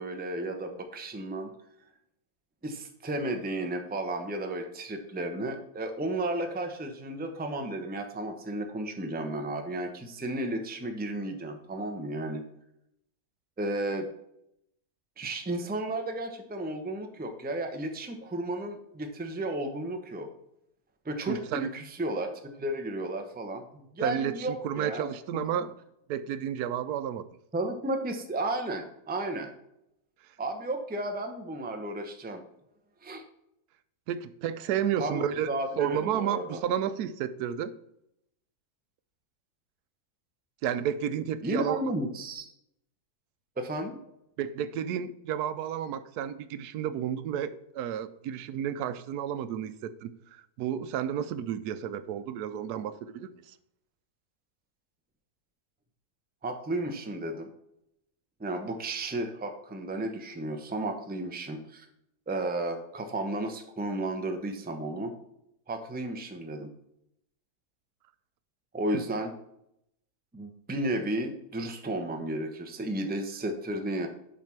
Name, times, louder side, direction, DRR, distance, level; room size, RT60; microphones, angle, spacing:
voice 1, 0.0-1.5 2.6-12.4 13.6-14.1 15.2-20.3 21.0-22.3 22.6-25.7 27.5-29.5 30.4-32.4 33.0-33.2 35.0-36.6 41.4-42.4 43.6-44.0 56.4-57.5 58.4-61.9 62.3-65.1 65.7-66.7 68.7-69.3 70.3-74.1, right 1 dB, 10° right, 5 dB, 0.5 m, -33 dB
voice 2, 21.3-21.7 24.0-25.7 26.1-27.3 34.1-35.5 35.8-37.7 40.6-41.8 44.4-53.5 68.9-69.0, right 9 dB, 90° right, 13 dB, 1.1 m, -31 dB
7.5 x 4.1 x 5.8 m, 0.78 s
omnidirectional pair, 1.6 m